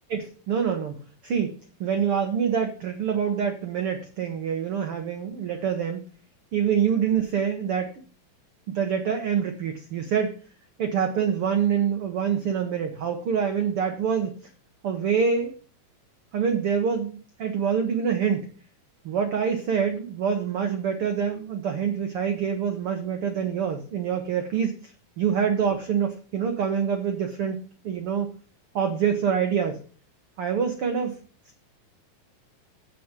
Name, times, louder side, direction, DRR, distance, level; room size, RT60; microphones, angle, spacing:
voice 1, 0.1-1.0 1.2-1.5 1.8-6.0 6.5-7.9 8.7-10.3 10.8-14.3 14.8-15.5 16.3-18.5 19.0-24.7 25.2-27.6 27.8-28.3 28.7-29.8 30.4-31.1, right 7 dB, 85° right, 5 dB, 1.2 m, -25 dB
8.5 x 7.1 x 8.2 m, 0.42 s
omnidirectional pair, 4.2 m